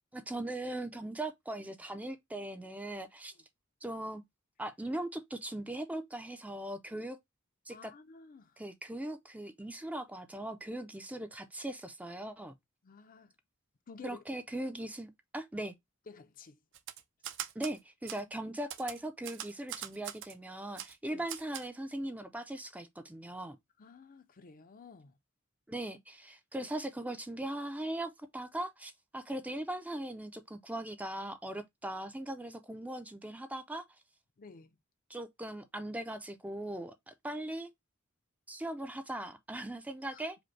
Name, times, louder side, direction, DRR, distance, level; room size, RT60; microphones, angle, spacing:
voice 1, 0.1-3.3 3.8-4.2 4.6-7.2 7.7-7.9 8.6-12.5 14.0-15.7 17.6-23.6 25.7-33.8 35.1-37.7 38.5-40.4, right 1 dB, 5° right, 0.5 m, -39 dB
voice 2, 7.7-8.6 12.8-13.3 13.9-14.2 16.1-16.6 21.1-21.3 23.8-25.2 26.6-26.7 34.4-34.8 40.1-40.2, left 4 dB, 40° left, 0.5 m, -52 dB
Typewriter, 16.7-17.8 18.1-18.2 18.7-20.3 20.8-20.9 21.3-21.7, right 10 dB, 60° right, 0.6 m, -41 dB
5.0 x 2.1 x 4.5 m
head